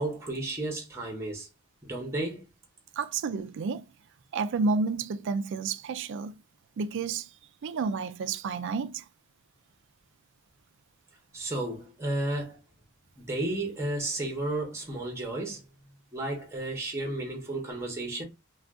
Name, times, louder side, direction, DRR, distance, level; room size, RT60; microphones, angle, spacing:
voice 1, 0.0-1.5 1.8-2.4 11.3-12.6 13.2-15.6 16.1-18.2, right 2 dB, 10° right, 0.8 m, -32 dB
voice 2, 3.0-3.8 4.3-6.3 6.8-7.3 7.6-9.1, right 4 dB, 60° right, 0.3 m, -30 dB
2.5 x 2.3 x 3.5 m
head